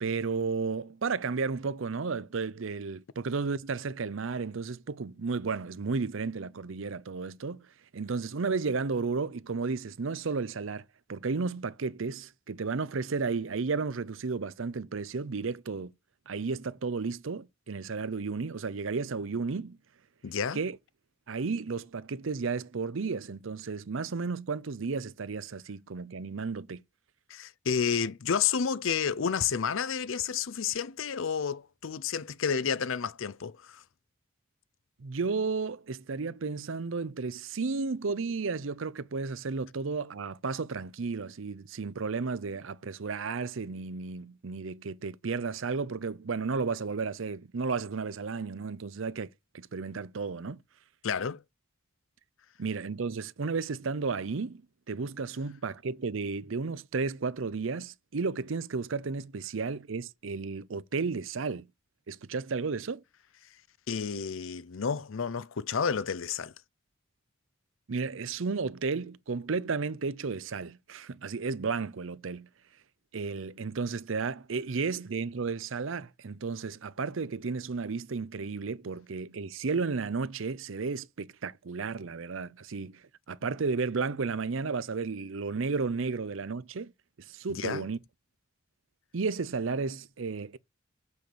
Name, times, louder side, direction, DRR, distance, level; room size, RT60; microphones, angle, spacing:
voice 1, 0.0-7.6 7.9-15.9 16.3-19.8 20.5-20.8 21.3-26.8 35.0-49.3 49.5-50.6 52.6-54.6 54.9-61.7 62.1-63.0 67.9-72.5 73.1-83.0 83.3-86.9 87.3-88.0 89.1-90.6, right 4 dB, 70° right, 0.6 m, -33 dB
voice 2, 20.2-20.6 27.3-33.8 51.0-51.4 63.9-66.5 87.5-87.9, left 6 dB, 70° left, 0.6 m, -30 dB
6.9 x 6.4 x 6.8 m
head